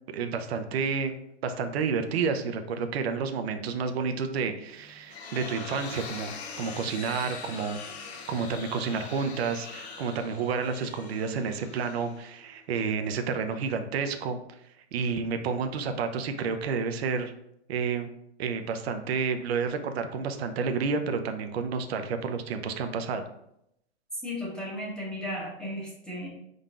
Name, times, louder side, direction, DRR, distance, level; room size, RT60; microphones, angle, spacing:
voice 1, 0.1-1.1 1.4-7.8 8.3-14.4 14.9-17.3 17.7-18.1 18.4-23.2, right 5 dB, 65° right, 7 dB, 0.6 m, -30 dB
sound 1, 4.7-12.6, left 5 dB, 70° left, 0.8 m, -42 dB
voice 2, 24.2-26.3, left 1 dB, ahead, -6 dB, 1.0 m, -35 dB
5.2 x 3.8 x 2.4 m, 0.78 s
hypercardioid pair, 135°, 34 cm